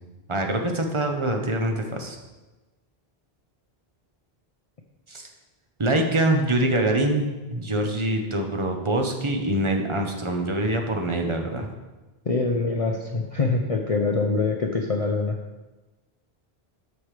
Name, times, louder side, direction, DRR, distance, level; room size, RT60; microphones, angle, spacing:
voice 1, 0.3-2.2 5.1-5.3 5.8-11.7, right 1 dB, 30° right, 3 dB, 0.9 m, -24 dB
voice 2, 12.3-15.4, left 3 dB, 40° left, 1 dB, 0.6 m, -24 dB
13.0 x 5.1 x 3.3 m, 1.1 s
omnidirectional pair, 1.1 m